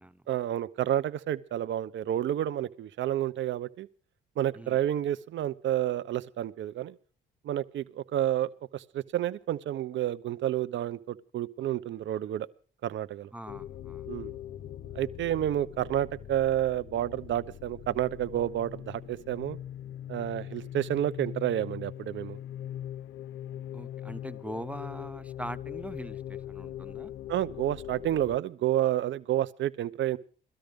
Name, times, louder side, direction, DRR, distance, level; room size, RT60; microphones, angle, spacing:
voice 1, 0.3-3.9 4.4-6.9 7.4-12.5 12.8-13.3 14.1-14.3 14.9-19.6 20.1-22.4 27.3-30.2, right 12 dB, 70° right, 0.9 m, -30 dB
voice 2, 13.3-14.1 23.7-27.1, right 1 dB, 5° right, 0.7 m, -42 dB
sound 1, 13.5-28.4, left 11 dB, 75° left, 0.8 m, -41 dB
18.0 x 13.0 x 5.2 m
cardioid pair, 90°, 20 cm